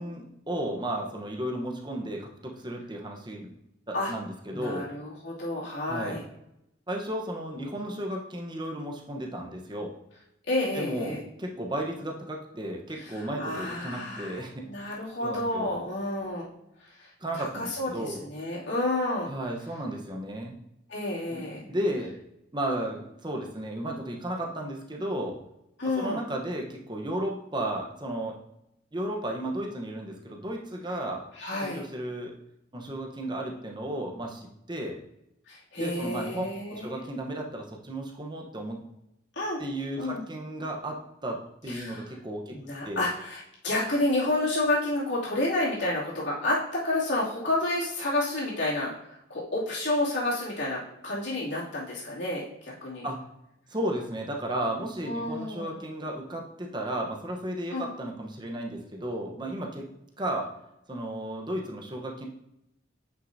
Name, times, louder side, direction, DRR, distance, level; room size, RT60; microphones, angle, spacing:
voice 1, 0.0-3.5 3.9-4.9 5.9-6.2 6.9-9.9 10.7-14.6 15.2-15.7 17.2-18.2 19.3-20.5 21.3-22.1 22.5-25.4 26.0-28.3 28.9-31.2 31.6-32.3 32.7-35.0 35.8-38.8 39.6-42.6 42.8-43.0 53.0-53.2 53.7-59.8 60.2-60.5 60.9-62.3, right 1 dB, 20° right, 1 dB, 1.0 m, -34 dB
voice 2, 4.5-6.2 10.5-11.2 13.0-16.5 16.8-17.1 17.3-19.3 20.9-21.6 25.8-26.2 31.3-31.8 35.5-37.0 39.3-39.6 40.0-40.2 41.7-42.0 42.5-53.1 55.0-55.7 57.7-57.9 58.2-58.3, left 2 dB, 65° left, -7 dB, 2.7 m, -30 dB
9.1 x 6.0 x 2.7 m, 0.82 s
head